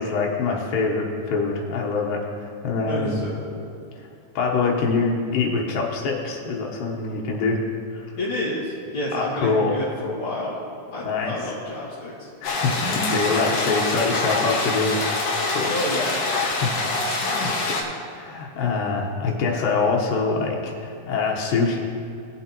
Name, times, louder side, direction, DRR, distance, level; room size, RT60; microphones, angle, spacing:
voice 1, 0.0-3.2 4.0-4.1 4.4-7.6 7.9-8.2 9.1-9.8 11.0-11.5 12.4-15.1 15.5-15.7 16.4-16.9 17.2-21.8, left 4 dB, 90° left, -2 dB, 2.8 m, -25 dB
voice 2, 2.9-3.6 8.2-10.6 10.9-12.3 15.7-16.2, left 1 dB, 45° left, -11 dB, 2.7 m, -29 dB
sound 1, 12.4-17.8, left 3 dB, 60° left, 2.1 m, -25 dB
18.0 x 7.8 x 2.9 m, 2.6 s
omnidirectional pair, 3.8 m